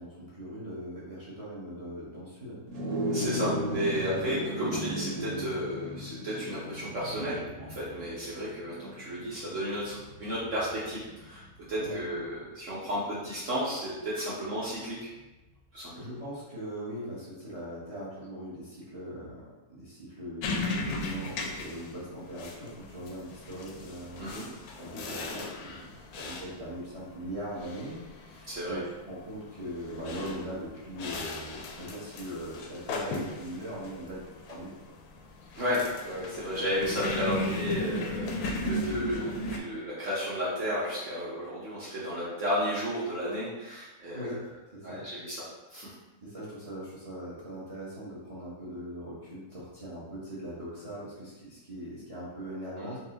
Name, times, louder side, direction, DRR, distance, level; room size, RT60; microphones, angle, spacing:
voice 1, 0.0-2.6 4.1-4.2 11.8-12.1 15.9-19.4 19.7-24.4 24.8-34.2 34.5-34.7 35.4-35.6 36.8-37.0 44.1-45.0 46.2-53.0, right 1 dB, 25° right, -8 dB, 1.0 m, -40 dB
sound 1, 2.7-12.3, equal, 85° right, 1.3 m, -36 dB
voice 2, 3.1-15.1 15.7-15.9 24.2-24.5 28.5-28.8 35.5-44.3 44.8-45.4 45.7-45.9 52.8-53.0, equal, 60° right, -8 dB, 1.2 m, -33 dB
sound 2, 20.4-39.6, left 2 dB, 85° left, 1.1 m, -37 dB
4.2 x 2.3 x 3.8 m, 1.1 s
omnidirectional pair, 1.6 m